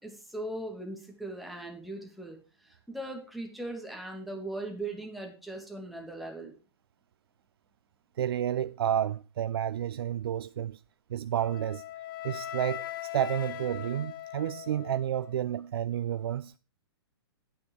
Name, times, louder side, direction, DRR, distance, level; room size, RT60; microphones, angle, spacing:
voice 1, 0.0-6.5, right 1 dB, ahead, 2.9 m, -39 dB
voice 2, 8.2-10.8 11.1-11.8 12.2-16.5, right 10 dB, 65° right, 0.4 m, -30 dB
Wind instrument woodwind instrument, 11.4-15.4, left 13 dB, 55° left, 1.2 m, -40 dB
9.3 x 9.3 x 4.9 m
figure-of-eight pair, 120°, 14 cm